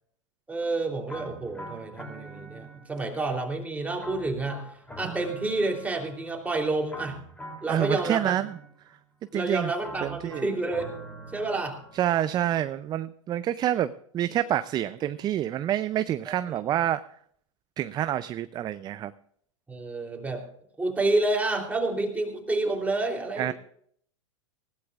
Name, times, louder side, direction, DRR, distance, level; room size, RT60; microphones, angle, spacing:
voice 1, 0.5-4.7 5.0-7.2 7.6-8.3 9.3-10.9 11.3-11.8 16.3-16.6 19.7-20.4 20.8-23.5, right 2 dB, 10° right, 2 dB, 3.2 m, -29 dB
sound 1, 1.1-3.2 4.0-6.4 6.9-9.0 9.8-12.2, right 1 dB, 10° left, 3.0 m, -43 dB
voice 2, 7.7-8.6 9.3-9.7 10.0-10.4 11.9-17.0 17.8-19.1 23.4-23.5, right 11 dB, 25° right, 14 dB, 0.5 m, -27 dB
19.5 x 16.5 x 2.4 m, 0.63 s
hypercardioid pair, 110°, 17 cm